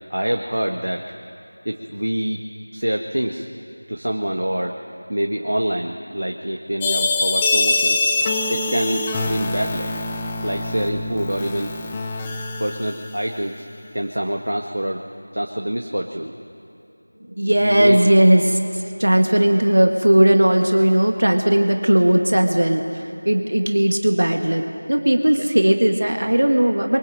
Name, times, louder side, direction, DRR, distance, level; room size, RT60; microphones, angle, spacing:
voice 1, 0.1-1.0 1.6-2.4 2.7-3.5 3.9-4.8 5.1-8.1 8.5-9.9 10.4-11.8 12.6-13.7 13.9-15.0 15.3-16.3 17.2-18.0 25.4-25.5, right 1 dB, 80° right, 2 dB, 1.7 m, -26 dB
sound 1, 6.8-13.5, left 2 dB, 10° left, 0.6 m, -24 dB
voice 2, 17.4-27.0, right 1 dB, 65° right, 4 dB, 1.8 m, -17 dB
23.0 x 23.0 x 7.7 m, 2.6 s
figure-of-eight pair, 175°, 0 cm